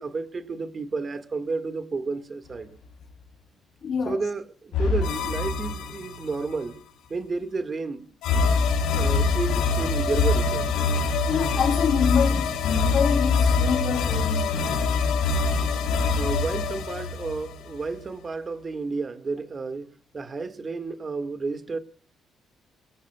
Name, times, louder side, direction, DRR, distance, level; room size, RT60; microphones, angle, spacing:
voice 1, 0.0-2.7 4.0-6.8 7.1-8.1 8.9-10.7 16.1-19.9 20.1-21.8, right 4 dB, 35° right, 1.8 m, -31 dB
voice 2, 3.8-4.2 11.3-14.8, left 6 dB, 55° left, 3.3 m, -26 dB
sound 1, 4.7-6.6 8.2-18.0, left 4 dB, 90° left, 3.6 m, -24 dB
26.5 x 20.0 x 2.3 m
cardioid pair, 90°, 0 cm